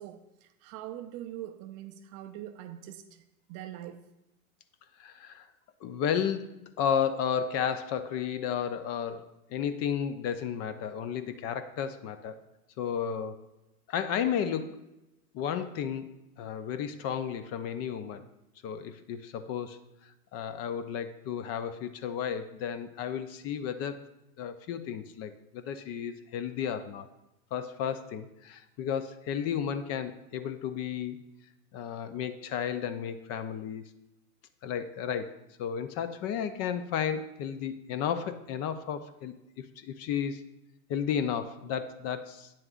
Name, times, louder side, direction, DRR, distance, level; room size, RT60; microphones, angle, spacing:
voice 1, 0.0-3.2 3.5-4.0, right 12 dB, 35° right, 0.4 m, -43 dB
voice 2, 5.0-5.5 5.8-12.4 12.8-13.4 13.9-14.8 15.3-16.1 16.4-18.2 18.6-24.0 24.4-27.1 27.5-31.2 31.7-33.8 34.6-40.4 40.9-42.5, left 8 dB, 35° left, 0.5 m, -33 dB
9.2 x 7.4 x 2.4 m
hypercardioid pair, 110°, 45 cm